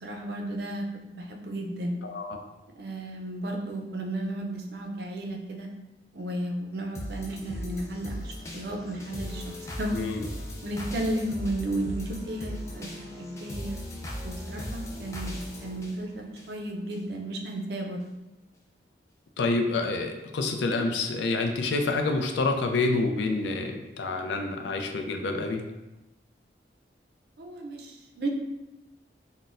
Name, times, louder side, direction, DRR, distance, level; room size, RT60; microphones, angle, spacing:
voice 1, 0.0-2.0 2.7-5.7 6.1-10.0 10.6-13.8 14.2-18.0 27.4-28.3, right 1 dB, 65° right, 1 dB, 0.5 m, -34 dB
voice 2, 2.0-2.4 9.9-10.3 19.4-25.6, left 3 dB, 85° left, 4 dB, 0.4 m, -28 dB
sound 1, 6.9-17.0 17.5-17.6, equal, 15° left, 0.3 m, -38 dB
4.0 x 2.1 x 2.4 m, 0.99 s
head